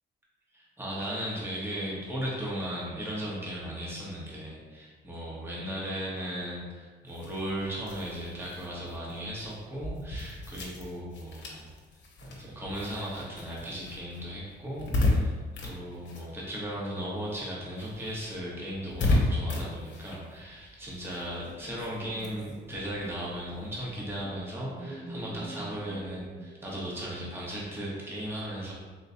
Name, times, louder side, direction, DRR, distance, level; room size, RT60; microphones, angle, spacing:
voice 1, 0.5-11.7 12.3-28.7, equal, 10° right, -6 dB, 1.0 m, -36 dB
sound 1, 7.1-17.0 17.3-24.2, left 2 dB, 65° left, 0.9 m, -34 dB
sound 2, 24.2-27.4, right 2 dB, 85° right, 0.8 m, -44 dB
3.9 x 3.0 x 2.6 m, 1.4 s
cardioid pair, 90°, 20 cm